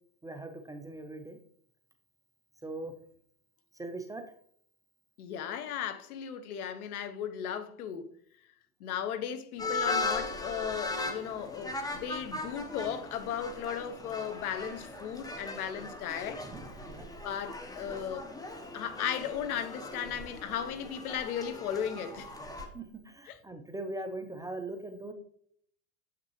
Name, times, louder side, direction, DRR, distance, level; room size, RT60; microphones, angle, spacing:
voice 1, 0.2-1.4 2.6-2.9 3.8-4.2 16.4-17.1 22.7-25.1, right 2 dB, 10° right, 0.5 m, -40 dB
voice 2, 5.2-8.1 8.8-16.5 17.2-18.3 18.7-22.3 23.3-23.4, left 8 dB, 75° left, 0.9 m, -36 dB
sound 1, 9.6-22.7, left 2 dB, 10° left, 1.0 m, -38 dB
7.6 x 5.9 x 3.1 m
hypercardioid pair, 95°, 45 cm